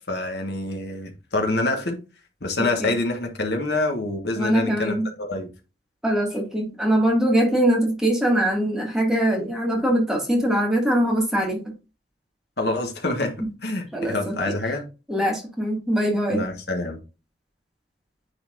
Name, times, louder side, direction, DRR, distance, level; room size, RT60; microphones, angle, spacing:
voice 1, 0.1-2.0 2.4-5.5 12.6-13.3 13.6-14.8 16.3-17.0, left 2 dB, 65° left, 1.5 m, -26 dB
voice 2, 4.4-5.1 6.0-11.6 13.9-14.5 15.1-16.4, right 1 dB, 5° right, 2.0 m, -22 dB
9.6 x 4.0 x 2.5 m
head